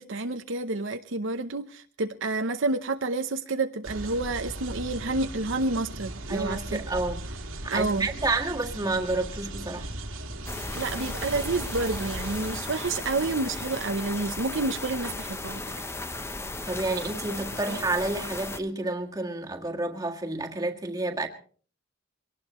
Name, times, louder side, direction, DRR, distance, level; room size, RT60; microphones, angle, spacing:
voice 1, 0.0-6.8 7.7-8.1 10.7-15.7 17.7-17.8, right 3 dB, 65° right, 0.8 m, -29 dB
sound 1, 3.8-12.6, right 1 dB, 80° right, 2.3 m, -38 dB
voice 2, 6.3-7.2 7.6-9.9 16.7-21.3, right 2 dB, 20° right, 1.7 m, -30 dB
sound 2, 10.5-18.6, left 2 dB, 15° left, 0.7 m, -36 dB
23.0 x 18.5 x 3.1 m
head